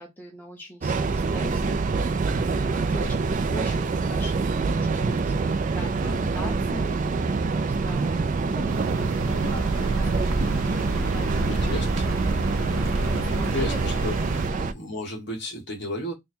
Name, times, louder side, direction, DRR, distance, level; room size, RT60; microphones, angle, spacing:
voice 1, 0.0-4.4 4.7-11.9 13.0-13.8 14.5-14.7, equal, 10° left, 0.8 m, -41 dB
Train, 0.8-14.7, right 4 dB, 40° right, 0.3 m, -25 dB
voice 2, 6.0-6.3 11.4-12.2 13.5-14.2 14.6-16.1, left 1 dB, 55° left, 1.4 m, -33 dB
sound 1, 8.7-14.5, right 2 dB, 85° right, 0.7 m, -30 dB
sound 2, 9.2-14.5, left 2 dB, 70° left, 0.8 m, -41 dB
3.4 x 2.2 x 4.2 m
head